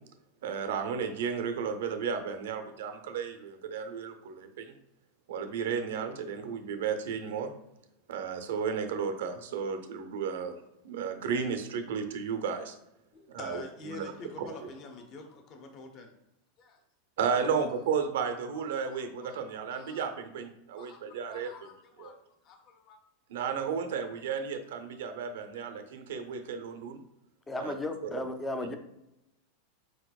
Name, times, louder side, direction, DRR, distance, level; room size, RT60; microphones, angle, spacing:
voice 1, 0.4-4.7 5.3-7.5 8.1-12.7 13.3-14.1 14.4-14.5 17.2-21.5 22.0-22.2 23.3-27.0 27.6-27.7 28.1-28.3, right 6 dB, 85° right, 7 dB, 0.6 m, -33 dB
voice 2, 13.1-16.1 16.6-16.8 17.5-17.7 18.5-18.6 18.9-19.4 19.7-20.0 20.7-23.0, left 3 dB, 30° left, 5 dB, 0.7 m, -47 dB
voice 3, 27.5-28.8, left 2 dB, 10° left, 7 dB, 0.4 m, -34 dB
4.7 x 4.3 x 2.3 m, 0.85 s
supercardioid pair, 165°, 0 cm